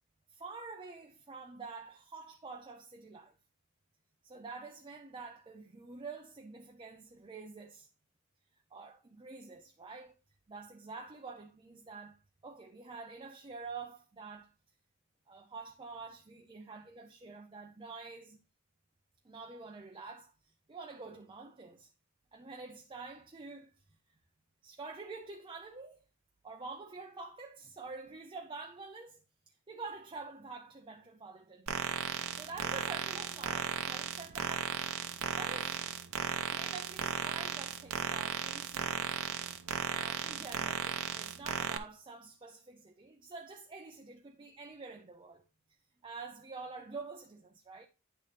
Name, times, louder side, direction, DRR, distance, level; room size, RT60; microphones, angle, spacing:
voice 1, 0.3-3.4 4.2-7.9 8.7-10.1 10.5-14.5 15.3-18.4 19.2-21.9 22.3-23.7 24.6-26.0 26.4-31.7 32.3-34.8 35.4-35.8 36.5-39.1 39.9-45.4 46.0-47.9, right 4 dB, 25° right, 0.6 m, -47 dB
sound 1, 31.7-41.8, right 7 dB, 80° right, 0.8 m, -36 dB
9.7 x 4.1 x 3.3 m
head